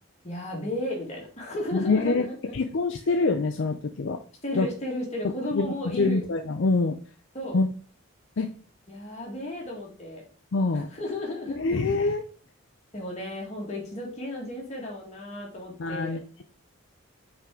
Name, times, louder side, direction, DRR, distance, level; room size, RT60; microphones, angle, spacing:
voice 1, 0.2-2.4 4.4-6.2 7.3-7.6 8.9-10.2 10.7-11.8 12.9-16.2, left 1 dB, 30° left, -2 dB, 1.9 m, -34 dB
voice 2, 1.7-2.2 2.5-4.2 4.5-4.7 5.5-7.0 7.5-7.7 8.4-8.5 10.5-10.9 11.6-12.2 15.8-16.4, left 3 dB, 60° left, 5 dB, 0.5 m, -25 dB
5.7 x 4.6 x 3.7 m, 0.42 s
head